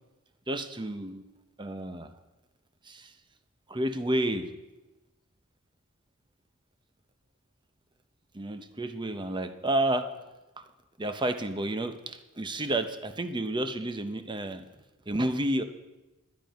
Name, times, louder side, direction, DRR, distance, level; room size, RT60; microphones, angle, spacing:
voice 1, 0.5-1.3 1.6-2.1 2.8-3.1 3.7-4.5 8.3-10.1 10.6-10.7 11.0-14.7 15.1-15.6, right 1 dB, 20° right, 9 dB, 0.8 m, -30 dB
12.5 x 12.0 x 5.2 m, 1.0 s
head